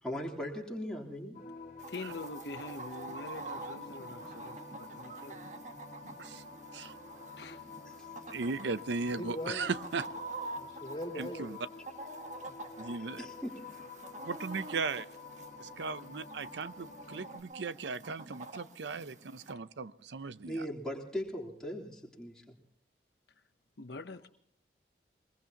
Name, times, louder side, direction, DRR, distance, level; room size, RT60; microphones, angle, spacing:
voice 1, 0.0-1.4 8.0-8.1 13.2-13.5 20.4-22.5, equal, 5° left, 3.3 m, -39 dB
sound 1, 1.3-17.4, left 4 dB, 40° left, 1.8 m, -49 dB
Chicken rooster, 1.8-19.5, right 3 dB, 40° right, 1.4 m, -47 dB
voice 2, 1.9-5.4 7.4-7.6 23.8-24.3, left 2 dB, 75° left, 0.9 m, -44 dB
voice 3, 8.3-10.1 11.2-11.6 12.8-13.3 14.3-15.1 15.6-20.7, right 4 dB, 85° right, 0.7 m, -37 dB
voice 4, 9.1-9.7 10.5-11.5 12.5-12.6, left 1 dB, 25° left, 3.5 m, -40 dB
22.5 x 21.0 x 2.9 m
head